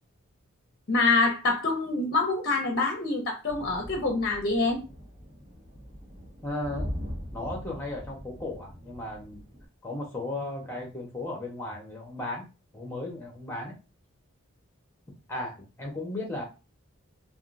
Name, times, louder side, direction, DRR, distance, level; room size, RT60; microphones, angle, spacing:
voice 1, 0.9-4.8, left 3 dB, 45° left, 2 dB, 0.6 m, -25 dB
sound 1, 3.5-9.6, equal, 50° right, 1.4 m, -41 dB
voice 2, 6.4-6.9 7.3-9.4 9.8-12.4 12.7-13.7 15.3-16.4, left 2 dB, 10° left, -1 dB, 0.9 m, -35 dB
3.5 x 2.5 x 2.5 m, 0.30 s
head